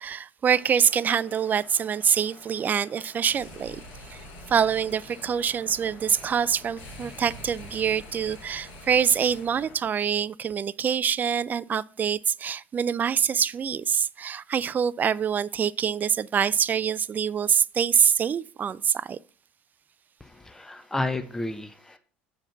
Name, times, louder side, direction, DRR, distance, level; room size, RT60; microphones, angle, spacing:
voice 1, 0.0-3.8 4.1-4.2 4.5-19.2, right 7 dB, 35° right, 0.4 m, -25 dB
sound 1, 0.5-9.8, left 3 dB, 60° left, 2.6 m, -52 dB
sound 2, 3.3-9.7, left 1 dB, 75° left, 2.6 m, -46 dB
voice 2, 20.2-22.0, left 2 dB, 5° left, 0.7 m, -32 dB
7.2 x 4.9 x 5.7 m
hypercardioid pair, 70°, 5 cm